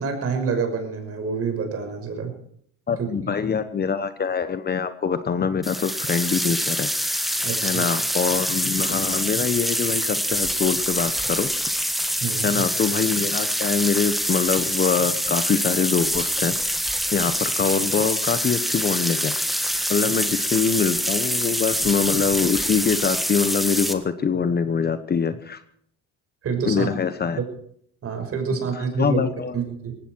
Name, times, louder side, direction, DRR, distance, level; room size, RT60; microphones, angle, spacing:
voice 1, 0.0-2.3 3.0-3.4 7.4-7.8 12.2-12.6 26.4-26.9 27.4-27.5 28.0-29.2 29.5-30.0, right 5 dB, 45° right, 5 dB, 5.8 m, -27 dB
voice 2, 2.9-6.9 7.6-11.5 12.4-16.5 17.1-19.3 19.9-25.6 26.7-27.4 29.0-29.5, left 6 dB, 30° left, 11 dB, 1.2 m, -24 dB
sound 1, 5.6-23.9, equal, ahead, 1.6 m, -25 dB
19.0 x 16.0 x 4.7 m, 0.65 s
cardioid pair, 115°, 32 cm